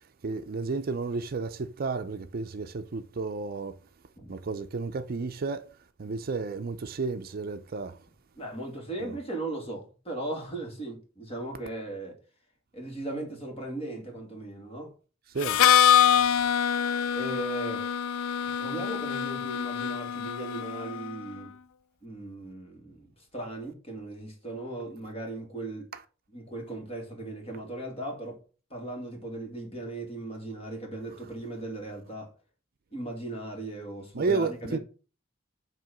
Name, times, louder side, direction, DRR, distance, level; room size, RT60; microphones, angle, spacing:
voice 1, 0.2-3.8 4.3-5.7 6.0-8.0 9.0-9.2 15.3-15.9 34.1-34.8, right 4 dB, 45° right, 0.5 m, -32 dB
voice 2, 8.4-12.2 12.7-14.9 17.1-17.9 18.4-21.5 22.0-25.9 26.3-28.4 28.7-32.3 32.9-34.8, right 2 dB, 30° left, 2.1 m, -37 dB
Harmonica, 15.4-21.1, left 9 dB, 80° left, 0.3 m, -25 dB
7.7 x 3.1 x 5.8 m
head